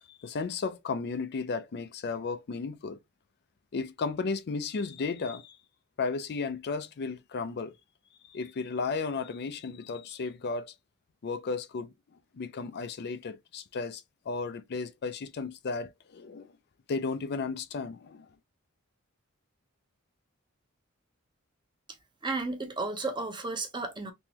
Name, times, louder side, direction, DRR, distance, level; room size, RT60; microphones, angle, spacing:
voice 1, 0.0-3.0 3.7-5.6 6.0-7.7 8.3-10.7 11.2-11.9 12.3-16.5 16.9-18.3, left 4 dB, 50° left, 0.4 m, -34 dB
voice 2, 22.2-24.1, right 3 dB, 20° right, 0.8 m, -33 dB
3.7 x 3.0 x 2.8 m
head